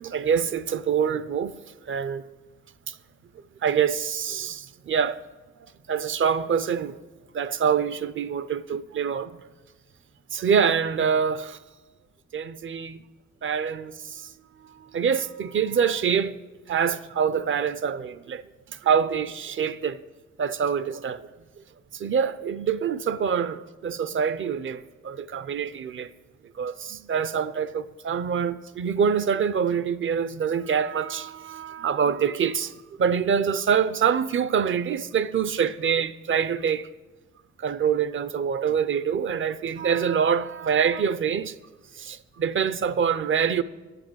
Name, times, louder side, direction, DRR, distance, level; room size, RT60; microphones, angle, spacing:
voice 1, 0.0-1.5 1.9-2.2 2.9-3.0 3.6-5.2 5.9-7.0 7.3-9.4 10.3-11.6 12.3-13.0 13.4-13.8 14.1-14.3 14.8-16.3 16.7-18.4 18.8-20.0 20.4-21.3 21.9-26.1 26.6-32.7 33.0-36.9 37.6-41.5 42.0-43.6, right 7 dB, 40° right, 0.6 m, -25 dB
10.0 x 7.8 x 7.8 m
cardioid pair, 90°, 30 cm